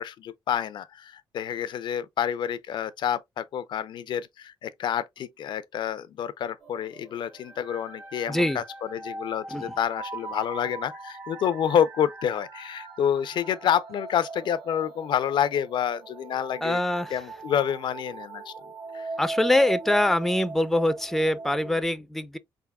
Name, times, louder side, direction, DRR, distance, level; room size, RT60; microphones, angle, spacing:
voice 1, 0.0-16.8 17.1-18.5 18.9-19.1, left 9 dB, 65° left, 0.4 m, -28 dB
sound 1, 6.6-21.8, right 3 dB, 90° right, 1.9 m, -40 dB
voice 2, 8.3-8.6 9.5-9.7 16.6-17.1 19.2-22.4, left 1 dB, 5° left, 0.4 m, -24 dB
4.0 x 3.6 x 2.2 m
cardioid pair, 85°, 9 cm